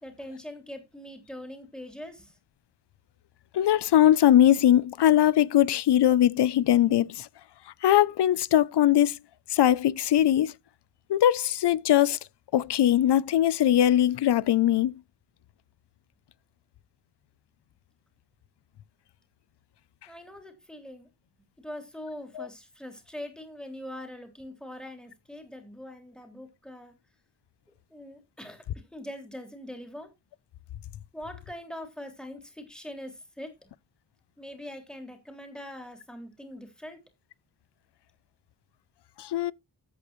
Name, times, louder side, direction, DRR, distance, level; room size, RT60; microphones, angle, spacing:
voice 1, 0.0-2.3 20.1-21.1 21.6-26.9 27.9-28.6 28.9-30.1 31.1-33.7 34.4-37.0, left 1 dB, ahead, 3.2 m, -42 dB
voice 2, 3.5-7.3 7.8-9.2 9.5-10.5 11.1-12.2 12.5-14.9 22.4-22.5 39.2-39.5, left 11 dB, 80° left, 0.6 m, -21 dB
14.0 x 8.2 x 3.1 m
wide cardioid pair, 135°, 40 cm